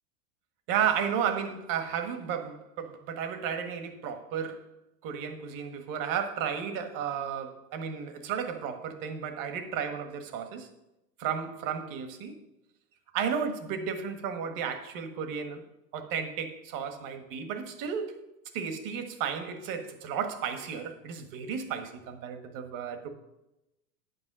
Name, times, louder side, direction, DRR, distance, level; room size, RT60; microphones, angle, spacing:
voice 1, 0.7-4.7 5.0-10.7 11.2-12.4 13.1-15.6 15.9-18.1 18.5-23.1, right 7 dB, 45° right, 1.5 m, -33 dB
9.3 x 5.5 x 6.1 m
hypercardioid pair, 110°, 48 cm